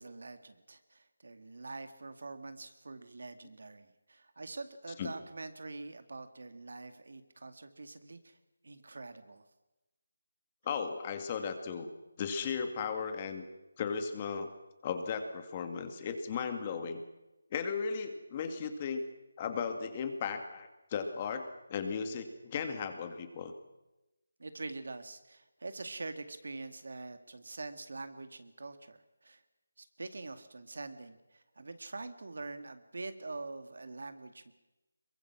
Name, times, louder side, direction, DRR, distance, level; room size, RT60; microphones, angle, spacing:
voice 1, 0.0-8.4 8.6-9.5 24.4-29.4 29.8-34.5, right 3 dB, 70° right, 9 dB, 2.2 m, -45 dB
voice 2, 10.6-11.9 12.2-13.4 13.8-14.5 14.8-17.0 17.5-19.1 19.4-23.5, left 6 dB, 25° left, 7 dB, 2.0 m, -36 dB
23.0 x 21.5 x 6.1 m, 1.0 s
figure-of-eight pair, 165°, 0 cm